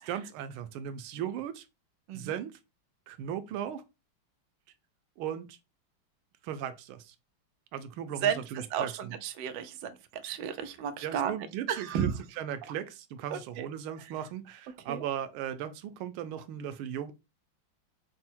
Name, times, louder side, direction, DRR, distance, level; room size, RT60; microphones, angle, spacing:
voice 1, 0.1-1.6 2.1-2.6 3.1-3.8 5.2-5.6 6.4-7.1 7.7-9.1 11.0-12.1 12.4-17.1, right 9 dB, 90° right, 1.5 m, -37 dB
voice 2, 8.2-11.3 11.7-12.2 13.3-13.7 14.0-14.1 14.9-15.0, right 8 dB, 75° right, 1.2 m, -33 dB
5.4 x 2.0 x 4.3 m
omnidirectional pair, 2.2 m